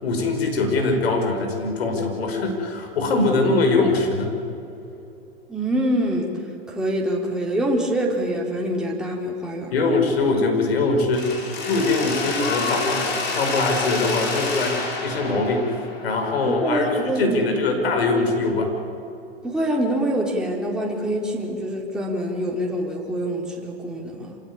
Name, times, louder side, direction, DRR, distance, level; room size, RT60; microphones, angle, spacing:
voice 1, 0.0-4.3 9.7-11.4 11.7-15.7 16.0-18.7, left 3 dB, 75° left, 3 dB, 5.6 m, -22 dB
voice 2, 5.5-6.4 6.7-9.9 16.4-17.5 19.4-24.4, right 1 dB, ahead, -3 dB, 3.6 m, -25 dB
Mechanisms, 11.1-17.0, left 3 dB, 35° left, 5.4 m, -28 dB
26.0 x 18.0 x 9.8 m, 2.8 s
hypercardioid pair, 115°, 31 cm